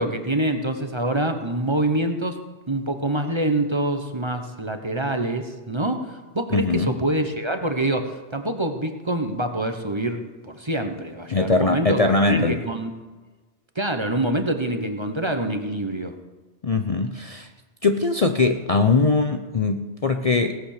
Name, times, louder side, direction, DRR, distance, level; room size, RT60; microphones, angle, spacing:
voice 1, 0.0-2.4 2.7-12.9 13.7-16.2, right 1 dB, 25° right, 6 dB, 1.1 m, -26 dB
voice 2, 6.5-6.9 11.3-12.6 16.6-17.5 17.8-20.6, left 3 dB, 35° left, 6 dB, 0.7 m, -21 dB
17.5 x 8.6 x 6.6 m, 1.3 s
omnidirectional pair, 1.2 m